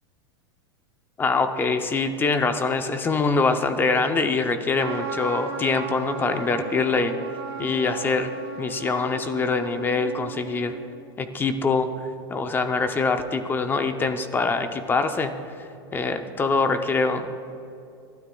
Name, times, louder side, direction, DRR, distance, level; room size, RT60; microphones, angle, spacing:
voice 1, 1.2-7.2 7.6-8.3 8.6-10.7 11.2-17.5, left 4 dB, 15° left, 8 dB, 0.6 m, -24 dB
Trumpet, 4.7-11.0, right 4 dB, 70° right, 2.6 m, -35 dB
25.0 x 12.5 x 2.3 m, 2.7 s
supercardioid pair, 140°, 14 cm